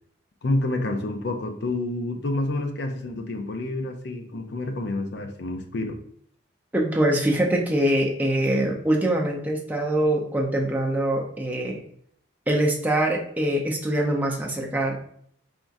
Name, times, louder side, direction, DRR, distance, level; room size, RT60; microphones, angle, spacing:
voice 1, 0.4-6.0, left 2 dB, 55° left, 5 dB, 0.5 m, -28 dB
voice 2, 6.7-11.8 12.5-14.9, right 1 dB, 10° right, -1 dB, 0.6 m, -23 dB
4.3 x 3.5 x 2.6 m, 0.65 s
head